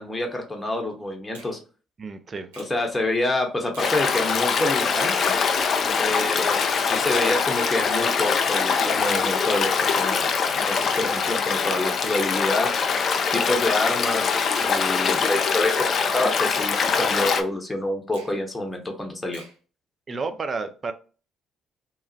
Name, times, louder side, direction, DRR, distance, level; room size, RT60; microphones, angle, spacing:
voice 1, 0.0-1.6 2.6-5.1 6.0-10.2 10.5-12.7 13.3-14.3 14.6-19.4, left 2 dB, 15° left, 0.8 m, -27 dB
Finger snapping, 1.3-1.6 2.5-2.8 3.7-4.0 4.9-5.1 6.1-6.4 7.3-7.6 8.5-8.8 9.7-9.9 10.9-11.1 12.1-12.3 13.3-13.6 14.5-14.8 15.7-16.0 16.9-17.2 18.1-18.4 19.3-19.6, right 4 dB, 85° right, 0.6 m, -47 dB
voice 2, 2.0-2.5 20.1-20.9, right 4 dB, 40° right, 0.4 m, -31 dB
Stream, 3.8-17.4, left 5 dB, 50° left, 0.4 m, -23 dB
2.8 x 2.4 x 2.6 m
hypercardioid pair, 50°, 0 cm